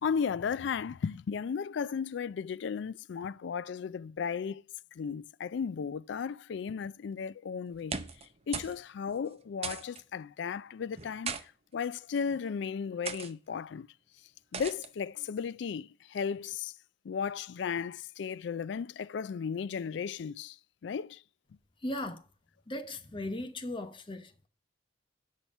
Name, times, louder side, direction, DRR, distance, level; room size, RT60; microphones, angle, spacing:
voice 1, 0.0-4.6 5.0-7.9 8.5-13.9 14.5-16.7 17.0-20.6 20.8-21.2, left 6 dB, 65° left, 0.3 m, -35 dB
sound 1, 7.7-8.3 8.5-8.8 9.1-9.2 9.6-10.0 10.9-11.4 12.2-12.4 13.0-13.3 14.5-14.9, right 6 dB, 30° right, 0.7 m, -38 dB
voice 2, 21.8-22.2 22.7-24.5, left 1 dB, 25° left, 0.9 m, -37 dB
8.4 x 5.8 x 5.3 m
head